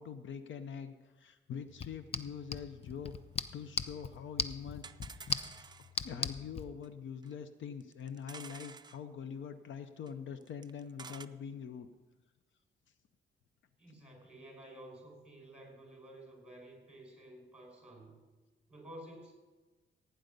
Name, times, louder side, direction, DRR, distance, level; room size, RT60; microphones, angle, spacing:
voice 1, 0.0-3.2 3.5-4.8 5.2-5.7 6.0-11.9, left 7 dB, 75° left, 10 dB, 0.7 m, -44 dB
sound 1, 1.7-6.7, left 4 dB, 30° left, 0.6 m, -39 dB
sound 2, 2.8-2.9 3.1-3.2 3.4-3.5 4.0-4.1 4.3-4.4 4.8-6.0 6.8-6.9 7.2-7.3 7.8-9.0 10.1-10.2 10.4-11.3, right 5 dB, 20° right, 0.4 m, -50 dB
voice 2, 13.8-18.2 18.7-19.3, right 1 dB, 5° right, 0 dB, 5.1 m, -52 dB
16.0 x 9.3 x 5.3 m, 1.2 s
cardioid pair, 130°, 20 cm